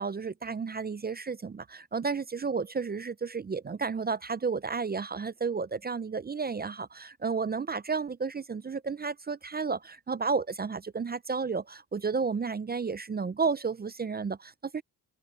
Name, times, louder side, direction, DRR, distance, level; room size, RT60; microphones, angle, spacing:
voice 1, 0.0-14.8, right 5 dB, 25° right, 0.4 m, -32 dB
cardioid pair, 105°, 40 cm